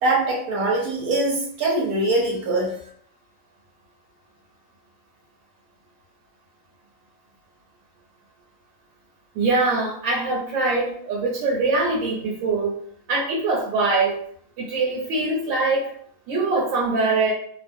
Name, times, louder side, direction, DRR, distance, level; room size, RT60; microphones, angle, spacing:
voice 1, 0.0-2.7, right 2 dB, 60° right, -2 dB, 1.0 m, -22 dB
voice 2, 9.3-12.7 13.1-14.1 14.6-15.8 16.3-17.3, right 3 dB, 75° right, -4 dB, 1.4 m, -23 dB
3.2 x 2.1 x 2.5 m, 0.62 s
omnidirectional pair, 2.1 m